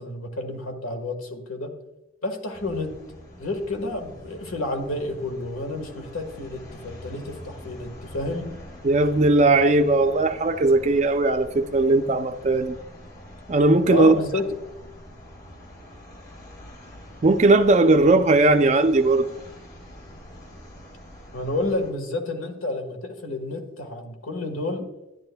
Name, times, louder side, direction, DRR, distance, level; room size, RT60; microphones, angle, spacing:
voice 1, 0.0-1.7 2.2-2.9 3.4-8.5 13.9-14.4 21.3-24.8, left 2 dB, 85° left, 1.5 m, -30 dB
sound 1, 2.5-21.9, left 1 dB, 45° left, 2.9 m, -44 dB
voice 2, 8.8-12.7 13.5-14.2 17.2-19.3, right 2 dB, 35° right, 0.4 m, -18 dB
11.0 x 10.5 x 2.2 m
head